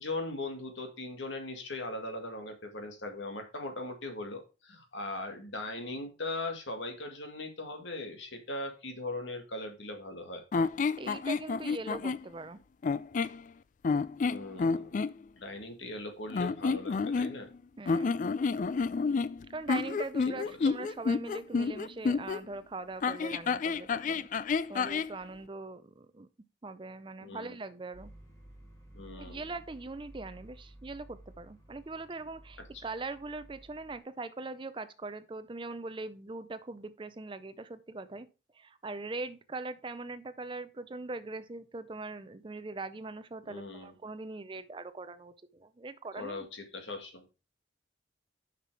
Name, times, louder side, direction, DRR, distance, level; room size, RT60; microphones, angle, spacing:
voice 1, 0.0-10.4 14.3-15.0 15.4-17.5 20.2-20.7 27.2-27.6 28.9-29.4 32.7-32.8 43.5-43.9 46.2-47.3, left 2 dB, 75° left, 1.9 m, -39 dB
sound 1, 10.5-12.2 12.8-13.4 13.8-15.1 16.3-17.6 17.9-22.4 23.0-25.1, left 4 dB, 40° left, 0.3 m, -30 dB
voice 2, 11.0-12.6 17.8-18.1 19.5-24.3 24.7-26.3 26.6-28.1 29.2-38.3 38.5-46.5, right 3 dB, 25° right, 0.4 m, -41 dB
sound 2, 27.9-34.0, right 1 dB, 15° left, 2.3 m, -53 dB
7.1 x 5.9 x 4.7 m
head